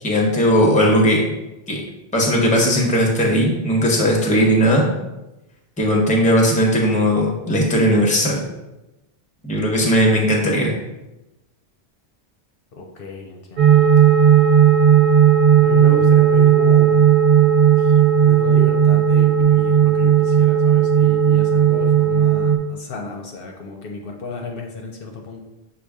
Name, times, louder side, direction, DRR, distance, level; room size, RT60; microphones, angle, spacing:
voice 1, 0.0-1.3 1.7-1.8 2.1-4.9 5.8-8.4 9.4-10.7, equal, 10° left, 0 dB, 0.6 m, -17 dB
voice 2, 12.7-13.8 15.6-17.0 17.8-25.4, left 3 dB, 65° left, 2 dB, 0.7 m, -33 dB
sound 1, 13.6-22.6, right 8 dB, 55° right, 0.6 m, -14 dB
6.3 x 2.3 x 3.5 m, 0.98 s
omnidirectional pair, 1.1 m